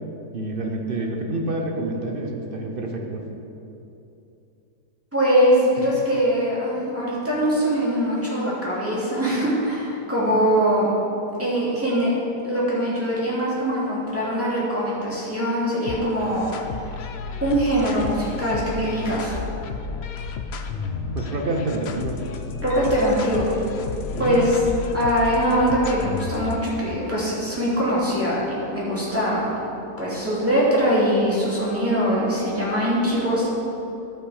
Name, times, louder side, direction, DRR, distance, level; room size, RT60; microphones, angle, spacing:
voice 1, 0.3-3.2 20.7-22.2 24.1-24.4, right 2 dB, 40° right, 1 dB, 0.8 m, -28 dB
voice 2, 5.1-10.9 11.4-12.1 12.4-16.9 17.4-19.4 22.6-23.5 24.2-24.5 24.9-29.5 30.0-33.5, equal, 10° right, -8 dB, 2.5 m, -22 dB
sound 1, 15.9-26.7, left 5 dB, 75° left, 0.6 m, -32 dB
13.0 x 5.7 x 5.0 m, 2.8 s
omnidirectional pair, 1.8 m